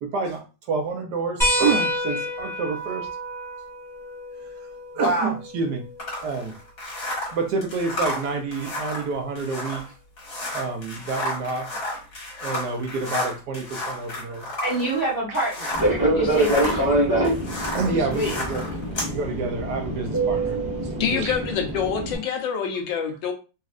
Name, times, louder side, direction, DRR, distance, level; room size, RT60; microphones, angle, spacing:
voice 1, 0.0-3.1 4.4-4.5 4.9-5.8 6.1-6.6 7.3-9.8 10.5-11.7 12.4-14.5 16.0-16.1 17.7-18.7 19.1-20.6 20.9-21.4, right 4 dB, 70° right, 1.2 m, -28 dB
sound 1, 1.4-6.5 8.0-8.1 9.8-9.9, left 1 dB, 5° left, 0.3 m, -29 dB
voice 2, 5.0-5.3 14.6-15.7 16.1-16.8 17.8-18.4, right 1 dB, 50° right, 0.6 m, -26 dB
sound 2, 6.0-16.0 16.3-19.1, left 1 dB, 50° left, 1.8 m, -32 dB
Fixed-wing aircraft airplane, 15.7-22.1, right 1 dB, 15° right, 0.8 m, -25 dB
voice 3, 21.0-23.3, left 7 dB, 75° left, 1.4 m, -26 dB
4.1 x 2.4 x 2.4 m
omnidirectional pair, 2.0 m